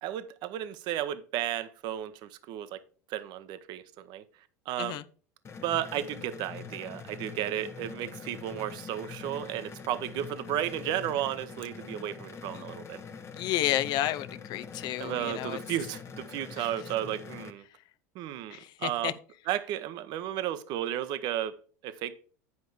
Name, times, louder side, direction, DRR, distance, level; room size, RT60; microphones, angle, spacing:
voice 1, 0.0-2.8 3.1-4.2 4.7-5.0 5.6-13.0 15.0-17.6 18.1-19.1 19.5-21.6 21.8-22.2, right 11 dB, 55° right, 0.8 m, -33 dB
sound 1, 5.4-17.5, left 5 dB, 30° left, 1.0 m, -44 dB
voice 2, 13.3-15.6 16.6-16.7 18.5-19.1, left 13 dB, 50° left, 0.6 m, -31 dB
9.6 x 5.2 x 4.7 m
hypercardioid pair, 80°, 9 cm